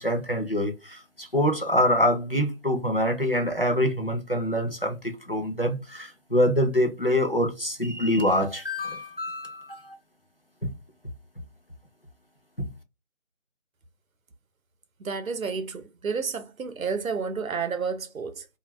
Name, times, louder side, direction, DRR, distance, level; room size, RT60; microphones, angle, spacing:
voice 1, 0.0-10.0 12.6-12.7, equal, 45° left, 0.5 m, -25 dB
voice 2, 15.0-18.5, right 5 dB, 80° right, 0.7 m, -30 dB
2.2 x 2.2 x 3.1 m
figure-of-eight pair, 175°, 41 cm